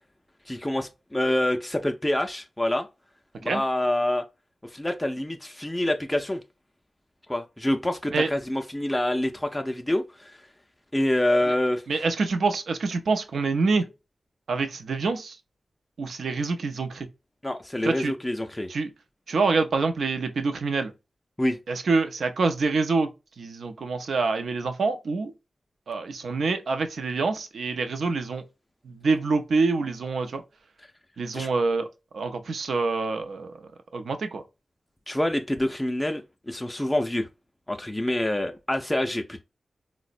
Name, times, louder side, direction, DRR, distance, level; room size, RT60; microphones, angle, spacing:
voice 1, 0.5-2.9 3.4-4.2 4.6-6.4 7.3-10.4 10.9-11.8 17.4-18.7 21.4-21.6 31.3-31.5 35.1-37.3 37.7-39.4, left 1 dB, 10° left, 0.3 m, -26 dB
voice 2, 11.9-13.9 14.5-15.4 16.0-17.1 17.8-18.1 18.7-18.9 19.3-20.9 21.7-23.1 23.4-25.3 25.9-28.4 28.8-30.4 31.2-31.9 32.1-33.5 33.9-34.4, right 4 dB, 80° right, 0.5 m, -26 dB
4.0 x 2.0 x 2.4 m
wide cardioid pair, 75°, 0 cm